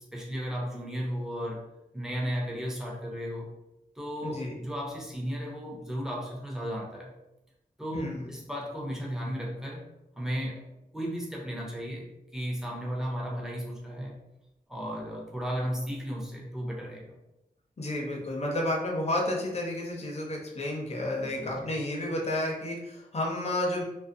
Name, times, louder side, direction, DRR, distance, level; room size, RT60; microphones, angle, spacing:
voice 1, 0.1-1.7 1.9-3.5 4.0-7.1 7.8-10.7 10.9-14.2 14.7-17.1 21.2-21.7, equal, 5° right, -2 dB, 0.7 m, -35 dB
voice 2, 4.2-4.5 7.9-8.3 17.8-23.8, left 1 dB, 45° left, -1 dB, 0.6 m, -31 dB
2.4 x 2.1 x 2.6 m, 0.91 s
cardioid pair, 55°, 16 cm